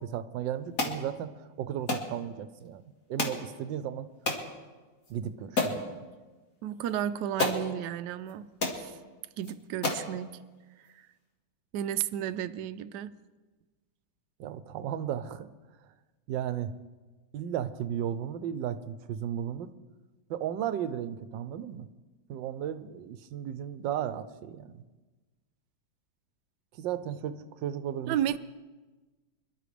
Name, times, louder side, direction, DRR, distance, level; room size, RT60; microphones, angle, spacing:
voice 1, 0.0-2.8 3.1-4.1 5.1-6.0 14.4-15.5 16.3-16.7 17.3-19.7 20.3-21.9 22.3-24.8 26.8-28.2, right 10 dB, 90° right, 12 dB, 1.4 m, -35 dB
sound 1, 0.8-1.0 1.9-2.1 3.2-3.4 4.3-4.5 5.0-5.1 5.6-5.8 6.9-7.0 7.4-7.6 8.3-8.4 8.6-8.8 9.4-9.5 9.8-10.1, left 2 dB, 50° left, 2.2 m, -29 dB
voice 2, 6.6-8.5 8.8-9.0 9.4-10.3 11.7-13.1 28.1-28.4, right 11 dB, 75° right, 11 dB, 1.1 m, -32 dB
26.0 x 12.0 x 3.4 m, 1.2 s
omnidirectional pair, 2.0 m